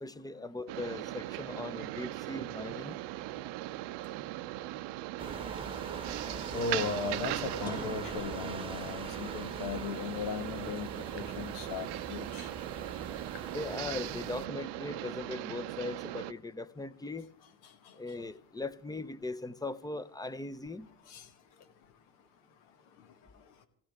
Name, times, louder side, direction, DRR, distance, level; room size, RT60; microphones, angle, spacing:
voice 1, 0.0-3.0 13.4-17.3 17.9-20.9, left 2 dB, 10° left, 0.6 m, -39 dB
sound 1, 0.7-16.3, right 16 dB, 65° right, 0.7 m, -39 dB
sound 2, 5.2-14.5, right 3 dB, 10° right, 1.1 m, -43 dB
voice 2, 6.5-12.5 17.6-18.0 21.1-21.3 23.0-23.1, left 5 dB, 75° left, 1.4 m, -37 dB
sound 3, 7.6-9.5, left 2 dB, 55° left, 5.2 m, -50 dB
19.0 x 16.0 x 3.6 m
hypercardioid pair, 65°, 45 cm